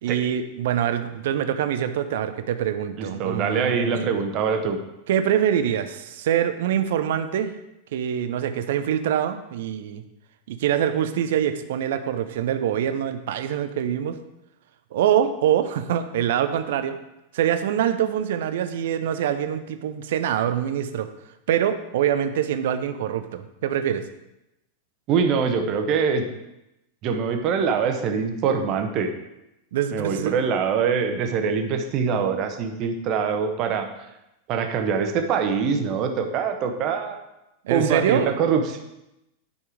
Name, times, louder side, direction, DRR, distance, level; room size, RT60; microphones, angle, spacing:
voice 1, 0.0-4.1 5.1-7.5 7.9-10.0 10.5-14.2 14.9-17.0 17.3-21.1 21.5-24.0 29.7-30.4 37.6-38.3, right 9 dB, 55° right, 10 dB, 0.7 m, -24 dB
voice 2, 3.0-4.8 25.1-26.2 27.0-29.1 29.9-33.9 34.5-37.2 37.7-38.8, right 6 dB, 40° right, 5 dB, 1.1 m, -24 dB
9.5 x 5.5 x 4.9 m, 0.91 s
figure-of-eight pair, 90°, 0 cm